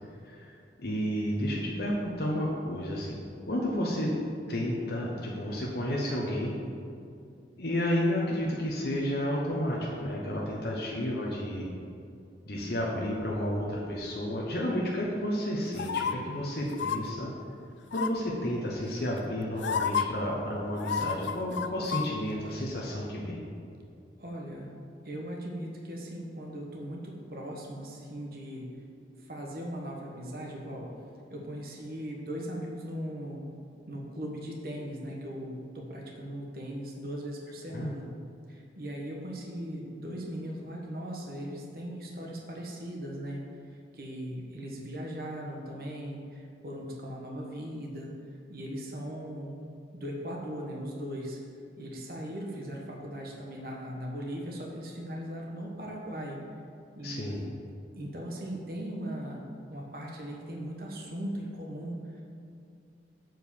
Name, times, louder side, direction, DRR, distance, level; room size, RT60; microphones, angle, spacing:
voice 1, 0.0-0.5 0.8-3.2 3.4-4.1 4.5-6.5 7.6-11.7 12.4-17.3 17.9-23.4 37.7-37.9 57.0-57.4, equal, 60° left, -3 dB, 1.0 m, -31 dB
sound 1, 15.8-16.1 16.7-17.0 17.9-18.3 19.2-19.3 19.6-20.0 20.8-22.1 22.4-22.5, left 7 dB, 85° left, 0.4 m, -30 dB
voice 2, 24.2-24.7 25.0-28.7 29.2-30.9 31.3-33.6 33.8-38.1 38.5-43.4 43.9-48.1 48.5-49.5 49.9-51.4 51.8-56.4 56.9-57.5 58.0-62.2, equal, 55° right, -1 dB, 1.2 m, -38 dB
7.7 x 4.7 x 6.9 m, 2.4 s
head